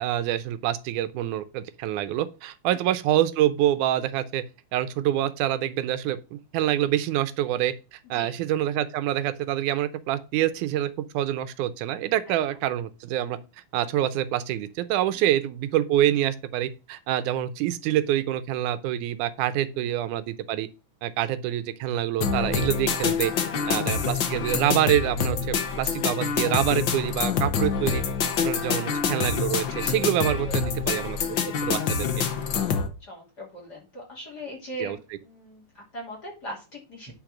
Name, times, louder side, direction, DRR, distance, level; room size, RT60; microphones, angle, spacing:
voice 1, 0.0-4.4 4.7-13.4 13.7-20.7 21.0-23.3 23.7-28.0 28.4-31.4 31.6-32.2 34.8-35.0, right 12 dB, 85° right, 2.2 m, -26 dB
sound 1, 22.2-32.9, left 6 dB, 60° left, 1.3 m, -26 dB
voice 2, 23.7-24.2 28.7-28.9 30.3-31.1 32.7-37.1, right 1 dB, 35° left, 3.1 m, -41 dB
9.1 x 4.5 x 6.0 m
omnidirectional pair, 3.4 m